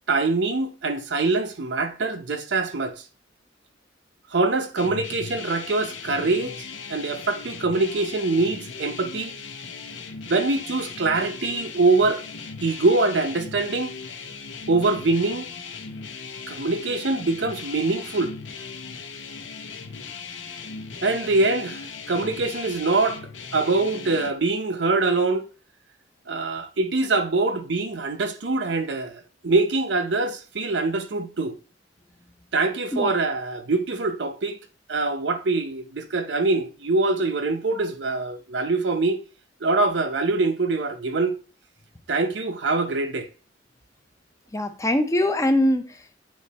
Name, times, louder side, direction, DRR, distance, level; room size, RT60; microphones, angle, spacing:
voice 1, 0.1-3.0 4.3-6.6 6.9-9.4 10.3-12.2 12.6-14.0 14.7-15.5 16.5-18.4 21.0-23.2 23.5-25.5 26.3-31.6 32.5-34.6 34.9-39.2 39.6-41.4 42.1-43.3, right 3 dB, 65° right, 0.7 m, -24 dB
sound 1, 4.8-24.3, left 5 dB, 85° left, 0.8 m, -38 dB
voice 2, 44.5-46.2, left 1 dB, 15° left, 0.6 m, -23 dB
8.4 x 3.1 x 4.1 m
head